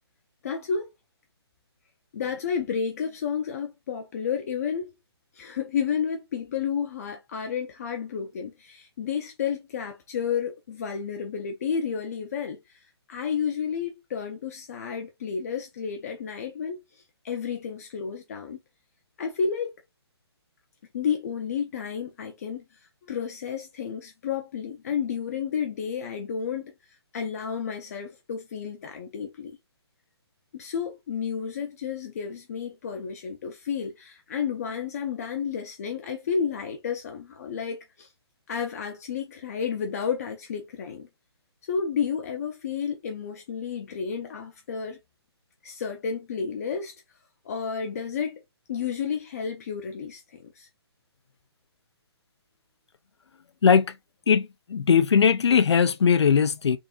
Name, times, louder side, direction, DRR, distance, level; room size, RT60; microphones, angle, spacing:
voice 1, 0.4-0.9 2.1-4.9 5.3-18.6 19.2-19.7 20.9-26.7 27.1-29.5 30.5-38.1 38.5-41.1 41.6-45.0 45.6-46.9 47.4-48.4 48.7-50.7, left 7 dB, 35° left, 0.6 m, -31 dB
voice 2, 54.3-56.8, left 6 dB, 80° left, 0.6 m, -20 dB
3.7 x 2.6 x 3.7 m
hypercardioid pair, 165°, 14 cm